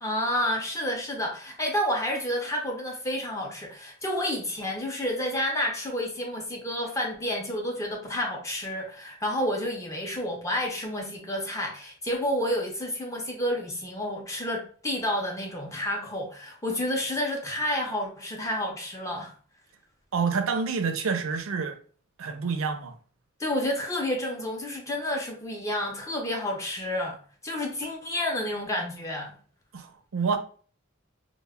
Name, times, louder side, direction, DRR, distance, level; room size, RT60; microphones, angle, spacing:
voice 1, 0.0-19.3 23.4-27.2 27.4-29.3, left 1 dB, 15° left, 0.4 m, -30 dB
voice 2, 20.1-21.8 22.2-22.9 29.7-30.4, right 5 dB, 80° right, 0.4 m, -28 dB
2.1 x 2.0 x 3.4 m
head